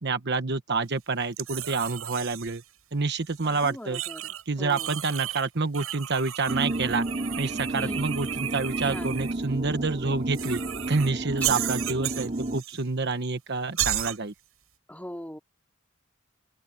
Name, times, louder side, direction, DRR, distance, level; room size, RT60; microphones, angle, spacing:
voice 1, 0.0-2.6 2.9-4.0 4.5-7.1 7.3-10.6 10.9-14.3, right 4 dB, 55° right, 1.1 m, -28 dB
sound 1, 1.4-2.6 3.3-4.4 4.7-5.5 5.7-9.4 10.3-11.1 11.4-12.8 13.1-13.2 13.8-14.2, right 12 dB, 80° right, 7.6 m, -34 dB
voice 2, 3.4-5.0 7.7-8.1 8.8-9.2 11.5-11.8 14.9-15.4, equal, 5° left, 4.0 m, -40 dB
sound 2, 6.5-12.6, right 1 dB, 35° right, 2.8 m, -32 dB
open air
head